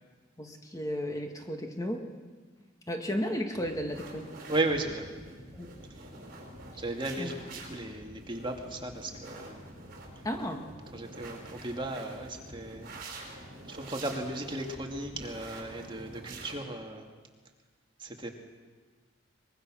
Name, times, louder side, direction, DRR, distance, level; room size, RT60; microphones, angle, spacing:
voice 1, 0.4-2.1 2.9-4.3 5.5-5.7 7.2-7.3 10.2-10.7, equal, 15° left, 3 dB, 1.8 m, -34 dB
sound 1, 3.6-16.6, right 2 dB, 45° right, 5.2 m, -46 dB
voice 2, 4.5-5.2 6.8-9.6 10.9-12.9 13.7-17.0 18.0-18.3, right 2 dB, 25° right, 2 dB, 2.3 m, -35 dB
24.0 x 22.5 x 6.3 m, 1.4 s
head